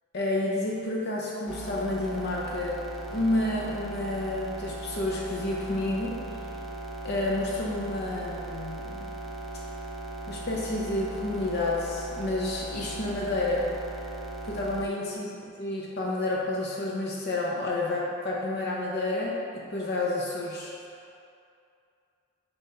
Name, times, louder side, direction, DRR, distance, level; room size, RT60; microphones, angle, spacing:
voice 1, 0.1-2.8 3.1-6.2 7.0-9.1 10.3-13.7 14.4-15.3 15.6-20.7, left 2 dB, 55° left, -3 dB, 0.7 m, -30 dB
sound 1, 1.5-14.9, right 2 dB, ahead, 0.4 m, -38 dB
6.4 x 2.9 x 5.6 m, 2.5 s
head